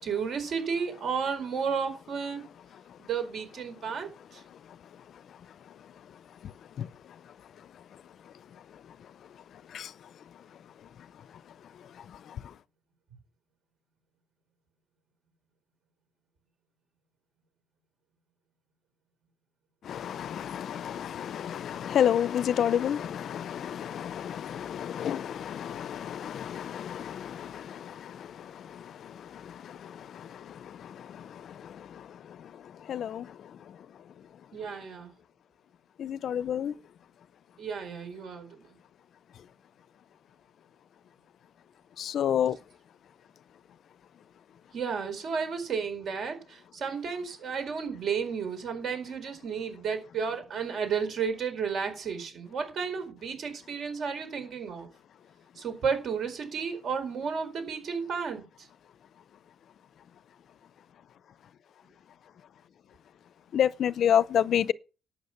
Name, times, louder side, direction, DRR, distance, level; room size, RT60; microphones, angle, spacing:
voice 1, 0.0-2.4 3.0-4.4 34.5-35.1 37.6-38.6 44.7-54.9 55.6-58.7, right 6 dB, 50° right, 4.3 m, -32 dB
voice 2, 19.9-28.3 28.7-30.3 31.0-31.3 32.9-33.3 36.0-36.7 42.0-42.6 63.5-64.7, left 9 dB, 55° left, 0.6 m, -30 dB
12.0 x 8.6 x 5.8 m
cardioid pair, 140°, 0 cm